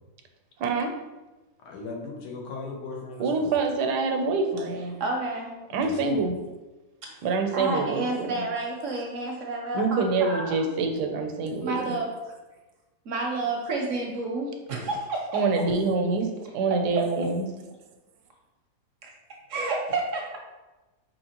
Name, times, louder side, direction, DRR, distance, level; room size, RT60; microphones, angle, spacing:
voice 1, 0.6-0.9 3.2-5.0 5.7-6.4 7.2-8.4 9.7-12.0 15.3-17.5, right 4 dB, 85° right, 4 dB, 1.2 m, -26 dB
voice 2, 1.6-3.5 5.7-6.2, left 4 dB, 90° left, 0 dB, 1.4 m, -38 dB
voice 3, 5.0-5.5 7.0-7.2 7.5-10.7 11.6-12.1 13.1-15.4 16.7-17.0 19.0-19.1 19.5-20.4, right 2 dB, 65° right, 1 dB, 0.8 m, -30 dB
4.8 x 2.9 x 2.9 m, 1.1 s
omnidirectional pair, 1.7 m